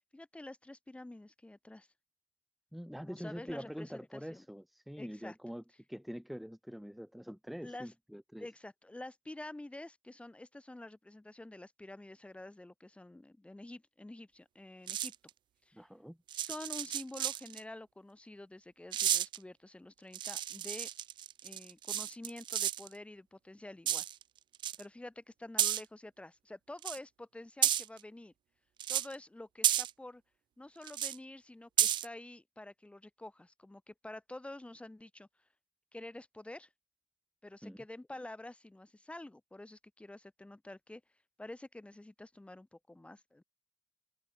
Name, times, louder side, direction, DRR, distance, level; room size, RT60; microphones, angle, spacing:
voice 1, 0.1-1.9 3.0-4.4 5.0-5.4 7.6-7.9 8.4-15.1 15.7-15.8 16.4-20.9 21.4-24.1 24.8-28.3 28.9-30.2 30.6-35.3 35.9-36.7 37.4-41.0 41.4-43.4, left 1 dB, 15° left, 1.8 m, -48 dB
voice 2, 2.7-5.6 5.9-8.5 15.7-16.2 37.6-37.8, equal, ahead, 0.8 m, -45 dB
sound 1, 14.9-15.3 16.3-17.6 18.9-19.4 20.1-22.9 23.9-24.2 24.5-24.8 25.6-25.8 26.8-27.0 27.6-28.0 28.8-29.1 29.6-29.9 30.9-31.2 31.8-32.1, right 11 dB, 85° right, 0.5 m, -32 dB
open air
cardioid pair, 65°, 8 cm